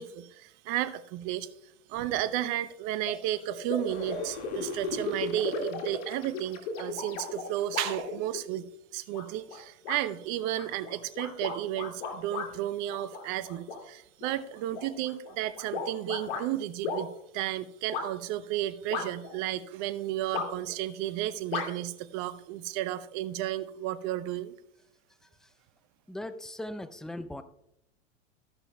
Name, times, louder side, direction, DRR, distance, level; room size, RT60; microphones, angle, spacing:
voice 1, 0.0-1.5 1.9-8.6 8.9-24.5, right 13 dB, 45° right, 14 dB, 0.8 m, -33 dB
sound 1, 3.0-3.1 3.5-8.6 9.1-9.6 9.8-10.0 10.5-12.5 12.9-13.8 14.2-16.4 16.8-17.0 17.9-18.0 18.9-19.4 20.3-20.8 21.5-21.7, left 4 dB, 65° left, 2.3 m, -35 dB
sound 2, 3.9-8.3, left 6 dB, 40° left, 2.0 m, -51 dB
voice 2, 26.1-27.4, left 1 dB, ahead, 11 dB, 0.4 m, -39 dB
13.5 x 11.0 x 2.3 m, 0.78 s
hypercardioid pair, 95°, 37 cm